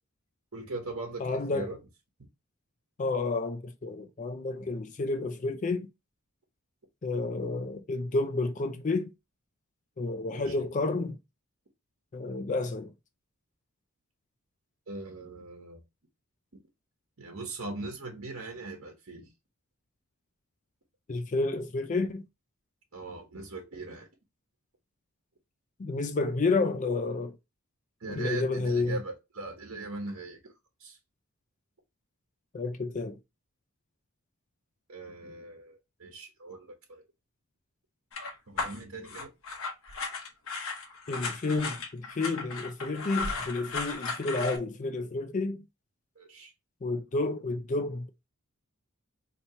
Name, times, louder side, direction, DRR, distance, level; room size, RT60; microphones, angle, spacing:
voice 1, 0.5-1.8 10.3-10.7 14.9-15.8 17.2-19.3 22.9-24.1 28.0-30.5 30.8-31.0 34.9-37.0 38.5-39.3 46.2-46.5, right 2 dB, 60° right, 1.1 m, -40 dB
voice 2, 1.2-1.7 3.0-5.9 7.0-9.1 10.0-11.2 12.1-12.9 21.1-22.2 25.8-27.4 28.1-29.0 32.5-33.2 41.1-45.7 46.8-48.1, left 3 dB, 35° left, 0.4 m, -30 dB
sound 1, 38.1-44.6, left 4 dB, 65° left, 1.0 m, -36 dB
4.4 x 3.0 x 2.8 m
head